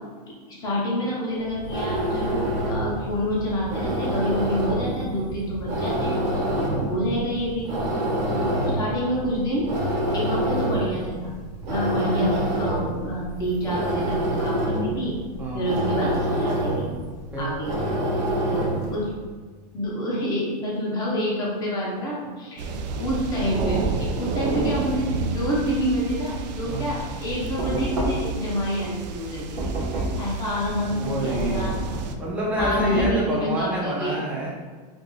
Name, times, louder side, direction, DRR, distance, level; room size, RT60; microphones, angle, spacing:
voice 1, 0.5-6.3 6.9-7.7 8.3-9.7 10.1-11.3 11.7-15.2 15.5-16.9 17.4-17.7 18.5-19.1 19.7-29.7 30.2-31.7 32.6-34.2, equal, 20° left, -5 dB, 0.7 m, -28 dB
sound 1, 1.4-19.0, right 1 dB, 70° right, 1.2 m, -27 dB
voice 2, 6.5-6.9 8.2-8.8 15.4-15.7 17.3-17.5 26.6-26.9 30.9-31.7 32.2-34.5, right 1 dB, 5° right, -5 dB, 0.4 m, -28 dB
sound 2, 22.6-32.2, right 4 dB, 90° right, 0.4 m, -30 dB
Knock, 27.6-28.4 29.6-30.3 32.6-33.3, right 1 dB, 25° right, 1.0 m, -28 dB
4.7 x 2.5 x 2.3 m, 1.5 s
supercardioid pair, 170°, 21 cm